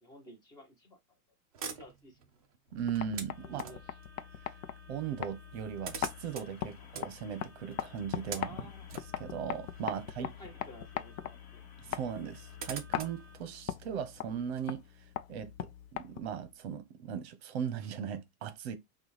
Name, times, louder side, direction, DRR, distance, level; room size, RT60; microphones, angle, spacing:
voice 1, 0.0-1.0 1.6-2.2 3.4-4.0 8.2-8.9 10.2-11.6, left 1 dB, 10° left, 0.8 m, -52 dB
sound 1, 1.5-4.0 5.1-5.2 5.4-10.9 11.2-11.3 12.1-14.7, right 6 dB, 30° right, 0.3 m, -47 dB
sound 2, 2.7-16.5, left 11 dB, 60° left, 0.6 m, -41 dB
voice 2, 2.7-3.6 4.9-8.5 9.2-10.3 11.8-14.8 15.3-15.7 16.0-18.8, right 8 dB, 45° right, 0.8 m, -38 dB
sound 3, 3.3-13.4, left 2 dB, 40° left, 1.2 m, -59 dB
6.0 x 2.3 x 3.2 m
supercardioid pair, 170°, 46 cm